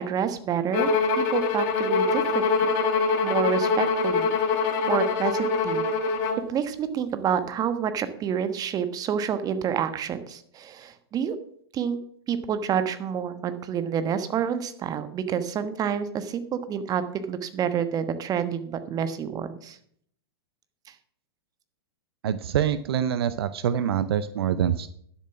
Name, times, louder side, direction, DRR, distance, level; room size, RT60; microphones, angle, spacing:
voice 1, 0.0-2.5 3.2-5.8 6.5-11.4 11.7-12.0 12.3-19.8, right 8 dB, 25° right, 11 dB, 1.3 m, -28 dB
Bowed string instrument, 0.7-6.5, left 4 dB, 45° left, 1.6 m, -24 dB
voice 2, 22.2-24.9, right 9 dB, 65° right, 15 dB, 0.7 m, -25 dB
12.0 x 7.2 x 5.9 m, 0.64 s
hypercardioid pair, 110°, 14 cm